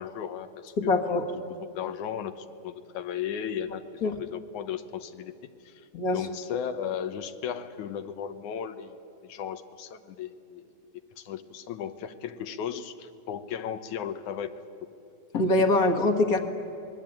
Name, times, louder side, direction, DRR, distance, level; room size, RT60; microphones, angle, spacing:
voice 1, 0.0-5.3 5.6-5.9 6.1-9.0 9.2-10.6 11.2-14.7, left 8 dB, 85° left, 9 dB, 2.5 m, -36 dB
voice 2, 0.8-1.2 4.0-4.2 5.9-6.2 15.3-16.4, left 2 dB, 40° left, 4 dB, 1.6 m, -23 dB
27.0 x 20.5 x 9.0 m, 2.7 s
omnidirectional pair, 3.4 m